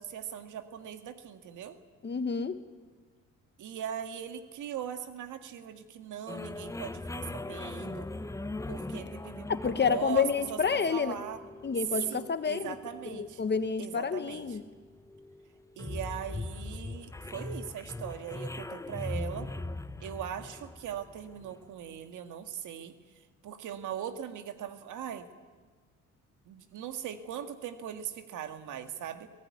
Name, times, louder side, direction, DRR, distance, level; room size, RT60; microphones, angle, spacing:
voice 1, 0.0-1.8 3.6-8.1 8.7-11.4 12.1-13.4 13.8-14.6 15.8-19.5 20.0-23.0 23.4-25.3 26.5-29.3, right 9 dB, 80° right, 8 dB, 1.9 m, -40 dB
voice 2, 2.0-2.6 9.5-11.1 11.6-12.8 13.1-14.6, left 6 dB, 35° left, 10 dB, 1.5 m, -29 dB
sound 1, 6.3-21.7, left 2 dB, 10° left, 0.8 m, -41 dB
23.0 x 17.5 x 9.6 m, 1.4 s
cardioid pair, 90°, 30 cm